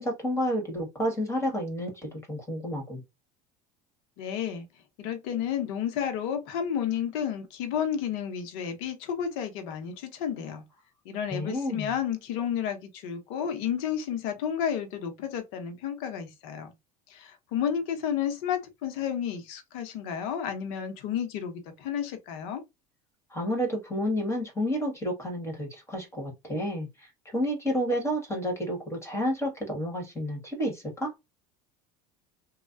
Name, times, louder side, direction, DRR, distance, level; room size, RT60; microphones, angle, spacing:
voice 1, 0.0-3.0 11.3-11.9 23.3-31.1, equal, 15° left, 1.8 m, -30 dB
voice 2, 4.2-4.7 5.0-10.6 11.0-16.7 17.1-22.6, left 8 dB, 70° left, 0.8 m, -31 dB
3.1 x 2.3 x 2.6 m
hypercardioid pair, 80°, 18 cm